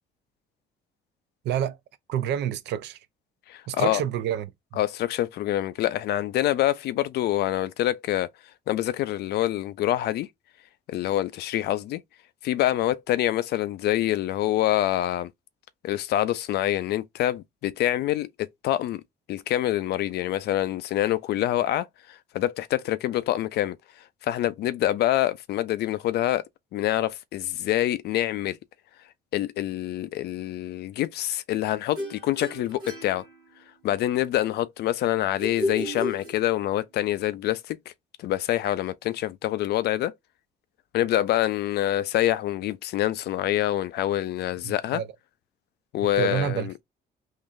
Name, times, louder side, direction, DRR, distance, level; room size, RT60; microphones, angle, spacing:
voice 1, 1.4-1.8 2.1-3.0 3.7-4.8 44.6-45.1 46.0-46.8, right 10 dB, 70° right, 0.6 m, -29 dB
voice 2, 3.5-4.0 4.8-8.3 8.7-10.3 10.9-12.0 12.4-15.3 15.8-19.0 19.3-23.8 24.2-26.4 26.7-28.6 29.3-33.3 33.8-37.8 38.2-40.1 40.9-45.0 45.9-46.7, left 13 dB, 65° left, 0.4 m, -26 dB
sound 1, 32.0-33.9 35.4-36.9, left 1 dB, 25° right, 1.9 m, -33 dB
3.8 x 3.1 x 2.5 m
cardioid pair, 175°, 18 cm